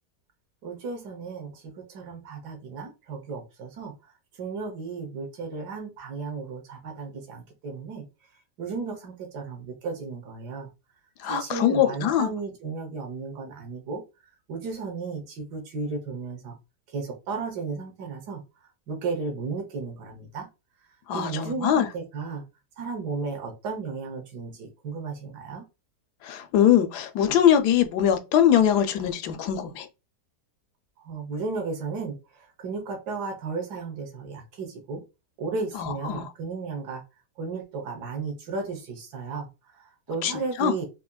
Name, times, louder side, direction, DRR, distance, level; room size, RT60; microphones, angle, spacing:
voice 1, 0.6-3.9 4.4-8.0 8.6-10.7 11.2-14.0 14.5-16.6 16.9-18.4 18.9-20.5 21.1-22.4 22.8-25.7 31.0-35.0 35.4-37.0 37.4-39.5 39.8-40.9, right 4 dB, 70° right, 1.5 m, -34 dB
voice 2, 11.2-12.3 21.1-21.9 26.2-29.9 35.7-36.3 40.2-40.3 40.6-40.7, left 10 dB, 75° left, 1.1 m, -22 dB
4.2 x 2.7 x 2.2 m
omnidirectional pair, 1.8 m